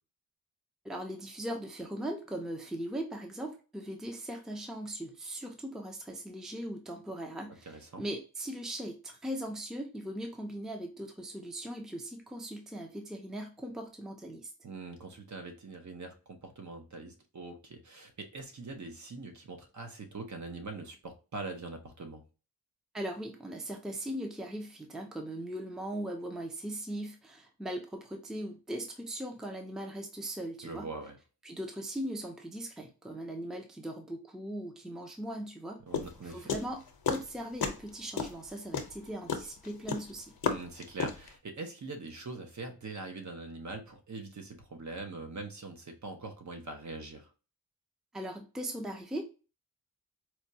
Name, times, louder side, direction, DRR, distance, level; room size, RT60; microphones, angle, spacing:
voice 1, 0.8-14.5 22.9-30.9 31.4-35.8 36.2-36.8 37.1-40.3 48.1-49.2, right 1 dB, ahead, 3 dB, 0.5 m, -39 dB
voice 2, 7.7-8.0 14.6-22.2 30.6-31.2 35.9-36.5 40.5-47.3, right 3 dB, 50° right, 5 dB, 0.8 m, -43 dB
sound 1, 35.9-37.3 37.6-37.9 38.2-41.3, left 6 dB, 75° left, 0.7 m, -32 dB
4.4 x 2.3 x 2.7 m, 0.33 s
wide cardioid pair, 130°, 37 cm